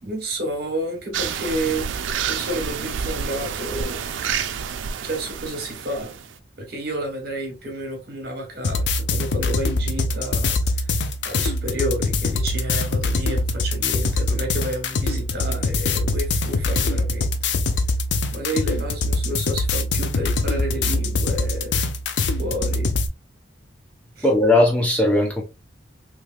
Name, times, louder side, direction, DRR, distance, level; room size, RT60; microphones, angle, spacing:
voice 1, 0.0-4.0 5.0-6.2 6.6-17.3 18.3-21.8 22.4-22.9 24.2-24.3, right 1 dB, 55° right, 1.3 m, -30 dB
sound 1, 1.1-6.3, right 7 dB, 90° right, 0.4 m, -29 dB
sound 2, 8.6-23.1, left 3 dB, 70° left, 0.5 m, -23 dB
voice 2, 24.2-25.4, left 1 dB, 10° left, 0.6 m, -18 dB
3.3 x 3.1 x 2.3 m
head